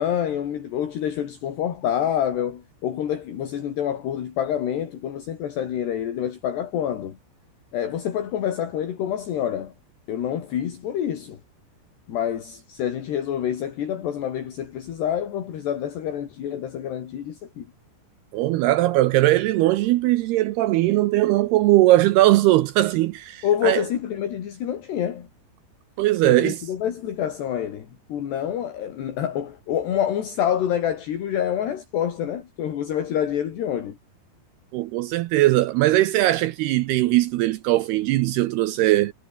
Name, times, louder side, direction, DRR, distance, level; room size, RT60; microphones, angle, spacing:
voice 1, 0.0-7.2 7.7-9.7 10.1-11.4 12.1-17.7 23.4-25.3 26.2-34.0, left 10 dB, 65° left, 4.6 m, -27 dB
voice 2, 18.3-23.8 26.0-26.6 34.7-39.1, right 16 dB, 80° right, 2.3 m, -20 dB
omnidirectional pair, 5.5 m